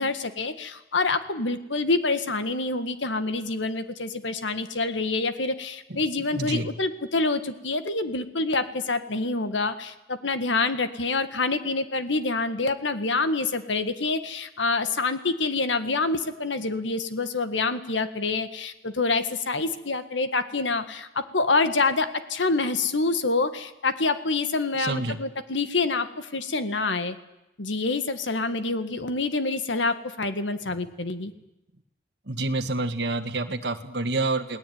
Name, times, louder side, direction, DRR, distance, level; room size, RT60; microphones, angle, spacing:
voice 1, 0.0-27.2 27.6-31.3, left 3 dB, 85° left, 10 dB, 1.8 m, -27 dB
voice 2, 6.3-6.7 24.8-25.2 32.3-34.6, right 2 dB, 65° right, 6 dB, 1.8 m, -28 dB
28.5 x 18.0 x 9.5 m, 0.94 s
head